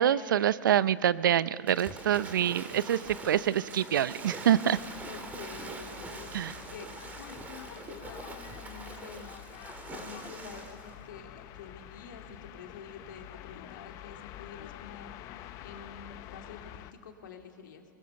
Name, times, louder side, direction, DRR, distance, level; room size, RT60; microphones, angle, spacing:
voice 1, 0.0-4.8 6.3-6.5, right 10 dB, 85° right, 17 dB, 0.6 m, -26 dB
Waves surf / Splash splatter, 1.7-10.9, right 3 dB, 15° right, 2.0 m, -44 dB
sound 1, 4.7-16.9, left 12 dB, 35° left, 0.9 m, -48 dB
voice 2, 5.1-6.3 6.7-9.3 9.8-15.1 15.6-17.8, left 6 dB, 75° left, 3 dB, 2.6 m, -48 dB
24.0 x 21.0 x 7.0 m, 2.3 s
hypercardioid pair, 145°, 10 cm